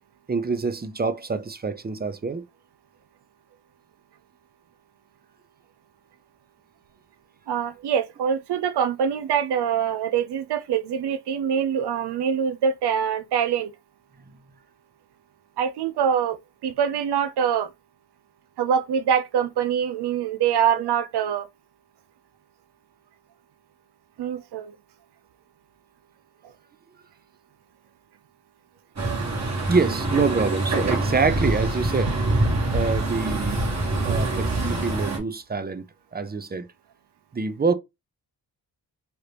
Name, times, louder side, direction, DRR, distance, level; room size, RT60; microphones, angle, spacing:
voice 1, 0.3-2.4 29.7-32.2 32.7-33.7 34.0-35.8 36.1-36.7 37.3-37.7, right 4 dB, 25° right, 0.5 m, -26 dB
voice 2, 7.5-13.7 15.6-16.4 16.6-17.7 18.6-21.5 24.2-24.7 34.1-34.2, right 8 dB, 80° right, 0.5 m, -24 dB
Truck, 29.0-35.2, right 2 dB, 45° right, 1.4 m, -25 dB
3.0 x 2.5 x 3.3 m
cardioid pair, 60°, 39 cm